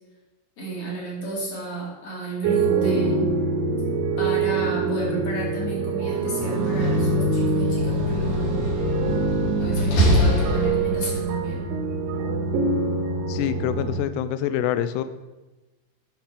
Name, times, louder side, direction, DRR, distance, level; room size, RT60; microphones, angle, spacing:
voice 1, 0.6-3.3 4.2-8.6 9.6-11.7, right 2 dB, 35° left, -4 dB, 3.3 m, -32 dB
sound 1, 2.4-14.0, right 2 dB, 75° right, 3.0 m, -24 dB
Slam, 6.5-11.2, equal, 50° left, 4.0 m, -25 dB
voice 2, 13.3-15.0, left 11 dB, 85° left, 11 dB, 2.4 m, -25 dB
10.0 x 5.9 x 6.5 m, 1.1 s
omnidirectional pair, 5.3 m